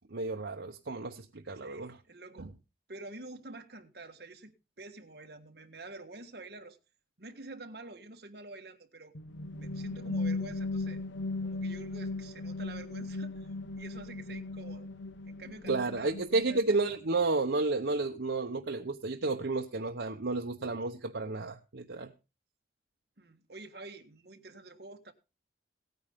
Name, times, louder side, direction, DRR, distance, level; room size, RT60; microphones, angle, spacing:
voice 1, 0.1-2.0 2.4-2.5 15.7-22.1, right 3 dB, 85° right, 0.9 m, -31 dB
voice 2, 1.5-2.5 2.9-6.8 7.2-9.1 9.5-11.0 11.4-14.9 15.3-16.6 23.2-25.1, right 2 dB, 60° right, 1.6 m, -48 dB
sound 1, 9.1-16.9, left 2 dB, 90° left, 0.8 m, -37 dB
17.5 x 9.4 x 3.6 m
head